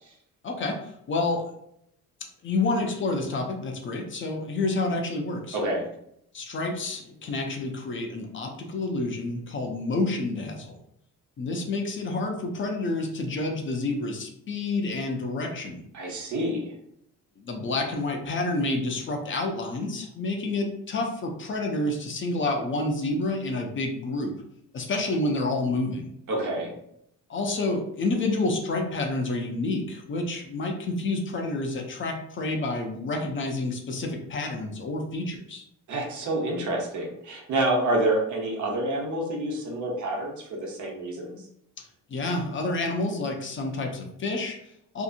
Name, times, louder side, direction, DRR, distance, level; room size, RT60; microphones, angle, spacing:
voice 1, 0.4-1.5 2.2-5.6 6.3-10.8 11.4-15.8 17.4-24.3 24.7-26.1 27.3-35.6 41.8-45.0, left 2 dB, 40° left, 2 dB, 0.5 m, -29 dB
voice 2, 5.5-5.8 15.9-16.7 26.3-26.7 35.9-41.4, right 1 dB, 65° right, -1 dB, 0.9 m, -28 dB
2.8 x 2.5 x 2.5 m, 0.73 s
cardioid pair, 115°, 32 cm